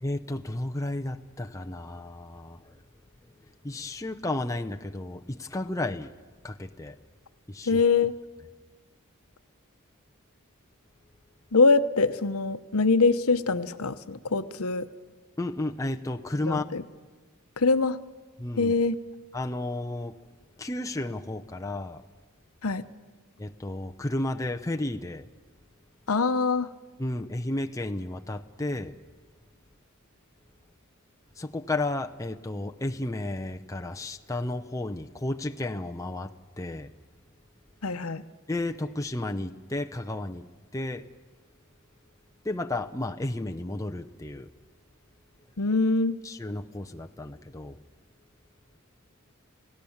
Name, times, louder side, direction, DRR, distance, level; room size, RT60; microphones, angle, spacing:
voice 1, 0.0-2.8 3.6-6.1 6.4-7.0 7.5-7.8 15.4-16.6 18.4-18.7 19.3-20.2 20.6-22.0 23.4-25.3 27.0-28.9 31.4-36.9 38.5-40.4 40.7-41.1 42.4-44.5 46.2-47.8, left 2 dB, 15° left, 0.7 m, -32 dB
voice 2, 7.7-8.1 11.5-14.8 16.5-16.8 17.6-18.0 18.6-19.0 22.6-22.8 26.1-26.7 37.8-38.2 45.6-46.2, left 4 dB, 80° left, 0.9 m, -23 dB
29.5 x 17.0 x 7.2 m
head